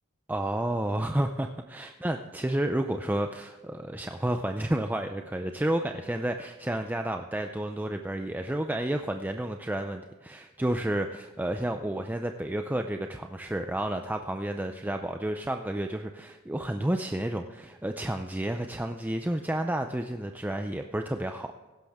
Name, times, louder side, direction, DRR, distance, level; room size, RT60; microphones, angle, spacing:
voice 1, 0.3-21.5, right 1 dB, 10° right, 5 dB, 0.5 m, -31 dB
16.0 x 11.5 x 3.6 m, 1.3 s
head